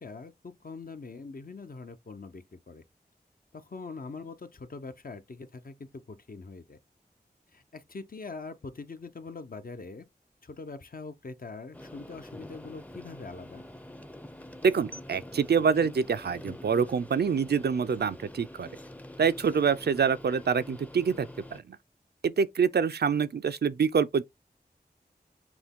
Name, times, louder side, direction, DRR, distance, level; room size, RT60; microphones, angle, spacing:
voice 1, 0.0-2.8 3.5-6.8 7.5-10.0 10.4-13.6, left 4 dB, 60° left, 0.6 m, -43 dB
sound 1, 11.7-21.6, left 1 dB, 10° left, 0.5 m, -46 dB
voice 2, 14.6-18.7 19.2-21.8 22.2-24.2, right 6 dB, 75° right, 0.4 m, -26 dB
5.9 x 2.2 x 3.6 m
wide cardioid pair, 50°, 17 cm